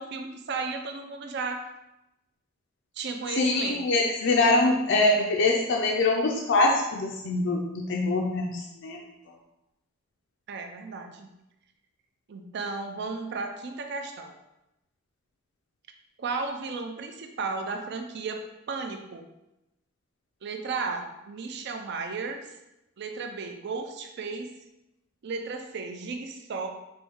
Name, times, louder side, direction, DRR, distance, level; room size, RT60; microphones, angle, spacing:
voice 1, 0.0-1.7 3.0-3.8 10.5-11.3 12.3-14.3 16.2-18.4 18.7-19.3 20.4-22.5 23.0-24.5 25.2-26.7, right 4 dB, 55° right, 5 dB, 0.4 m, -34 dB
voice 2, 3.4-9.0, left 2 dB, 60° left, 0 dB, 0.4 m, -24 dB
4.4 x 2.6 x 3.6 m, 0.91 s
head